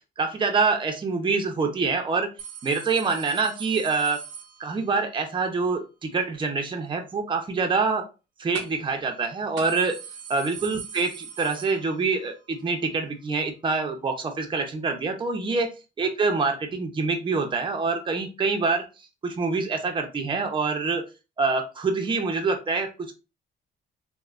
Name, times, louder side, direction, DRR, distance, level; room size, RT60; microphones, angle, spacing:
voice 1, 0.2-2.3 2.6-4.2 4.6-8.0 8.4-10.0 10.3-11.1 11.4-15.7 16.0-18.8 19.2-21.0 21.4-23.2, right 4 dB, 25° right, 4 dB, 0.6 m, -26 dB
sound 1, 2.4-5.1 8.5-8.9 9.2-9.3 9.6-12.3 12.6-12.7 13.7-13.8, right 7 dB, 90° right, 0.7 m, -41 dB
3.1 x 2.1 x 2.4 m, 0.30 s
cardioid pair, 90°, 20 cm